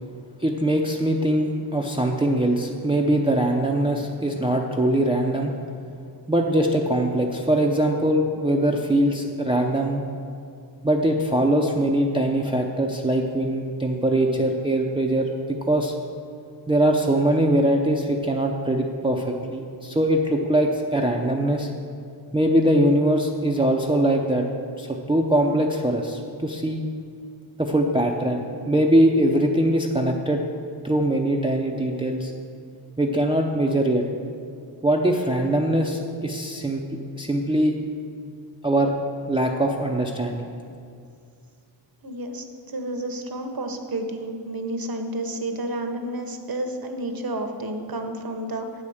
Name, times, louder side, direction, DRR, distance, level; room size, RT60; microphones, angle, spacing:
voice 1, 0.4-5.5 6.3-10.0 10.8-15.9 16.7-21.7 22.3-24.5 24.8-26.8 27.6-30.4 30.8-32.3 33.0-34.0 34.8-36.8 37.2-37.7 38.6-38.9 39.3-40.5, right 1 dB, 10° right, 1 dB, 0.6 m, -22 dB
voice 2, 42.0-48.7, right 1 dB, 50° right, 5 dB, 1.0 m, -31 dB
8.4 x 5.0 x 7.0 m, 2.4 s
cardioid pair, 60°, 46 cm